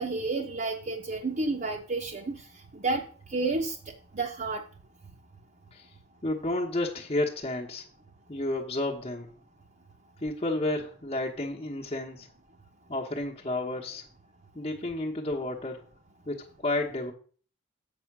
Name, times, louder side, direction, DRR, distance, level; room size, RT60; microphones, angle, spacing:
voice 1, 0.0-2.5 2.7-3.8 4.1-4.6, right 3 dB, 35° right, 2 dB, 0.8 m, -30 dB
voice 2, 6.2-7.9 8.3-9.3 10.2-12.3 12.9-14.0 14.5-15.8 16.3-17.1, left 2 dB, 30° left, -1 dB, 1.1 m, -31 dB
7.8 x 5.6 x 6.0 m, 0.42 s
head